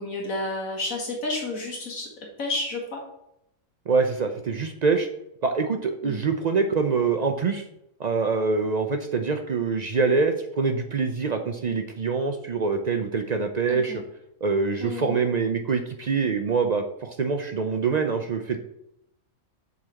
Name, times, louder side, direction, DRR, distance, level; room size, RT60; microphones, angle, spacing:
voice 1, 0.0-2.1 2.4-3.0 6.0-6.3 13.7-14.0 14.8-15.1, left 2 dB, 75° left, -1 dB, 1.9 m, -31 dB
voice 2, 3.9-5.1 5.4-7.6 8.0-14.0 14.4-18.6, right 4 dB, 70° right, 6 dB, 0.4 m, -25 dB
7.4 x 4.0 x 6.2 m, 0.80 s
omnidirectional pair, 1.4 m